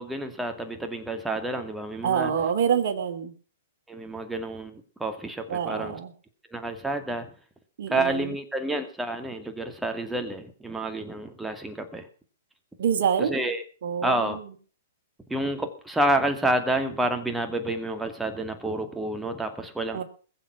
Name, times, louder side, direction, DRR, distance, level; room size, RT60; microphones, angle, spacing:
voice 1, 0.0-2.3 3.9-6.0 6.5-7.3 7.9-12.1 13.2-13.6 14.0-14.4 15.3-20.0, right 1 dB, 5° right, 6 dB, 2.3 m, -29 dB
voice 2, 2.0-3.3 5.5-6.1 7.8-8.3 12.8-13.4 13.8-14.5 19.9-20.0, right 8 dB, 60° right, 6 dB, 2.8 m, -26 dB
21.0 x 7.6 x 5.9 m, 0.40 s
hypercardioid pair, 120°, 0 cm